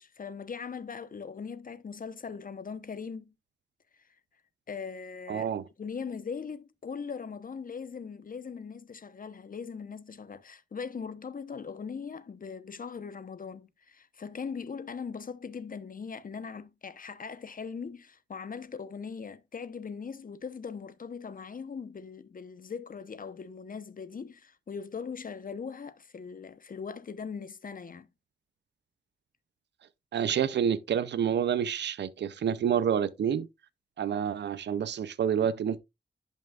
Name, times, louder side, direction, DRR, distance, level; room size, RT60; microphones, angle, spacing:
voice 1, 0.0-3.3 4.7-5.5 5.8-28.1, left 6 dB, 55° left, 0.8 m, -40 dB
voice 2, 5.3-5.7 30.1-33.5 34.0-35.8, right 8 dB, 85° right, 0.5 m, -28 dB
11.0 x 5.4 x 2.3 m
cardioid pair, 60°, 18 cm